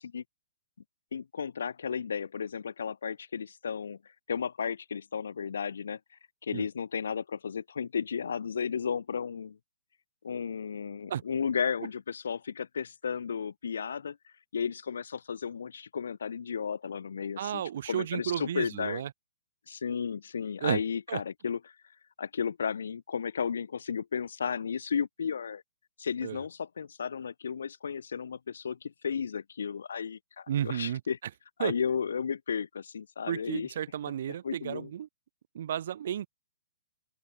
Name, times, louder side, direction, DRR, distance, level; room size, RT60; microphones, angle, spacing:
voice 1, 1.1-4.0 4.3-6.0 6.4-9.6 10.2-14.2 14.5-17.6 17.9-19.0 19.7-21.6 22.2-25.6 26.0-31.2 31.6-33.7 34.4-34.9, left 6 dB, 80° left, 1.1 m, -33 dB
voice 2, 17.4-19.1 20.6-20.8 21.1-21.2 26.2-26.4 30.5-31.0 31.6-31.7 33.3-35.1 35.5-36.3, right 10 dB, 50° right, 0.7 m, -32 dB
hypercardioid pair, 170°, 0 cm